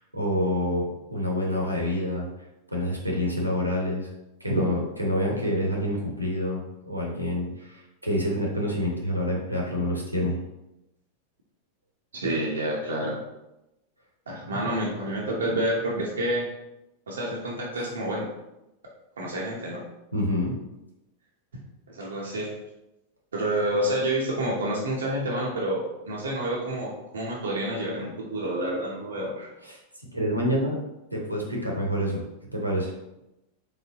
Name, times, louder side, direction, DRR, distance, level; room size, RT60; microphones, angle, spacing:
voice 1, 0.0-2.3 2.7-4.1 4.4-10.4 17.8-17.9 20.1-20.5 29.6-29.8 30.1-30.8 31.1-32.2 32.5-32.9, left 1 dB, 90° right, -1 dB, 1.1 m, -27 dB
voice 2, 12.2-13.2 14.3-16.5 17.1-18.3 19.2-19.8 21.9-22.5 23.3-29.5, right 1 dB, 70° right, -4 dB, 0.8 m, -28 dB
4.2 x 3.5 x 3.6 m, 0.93 s
figure-of-eight pair, 90°, 0 cm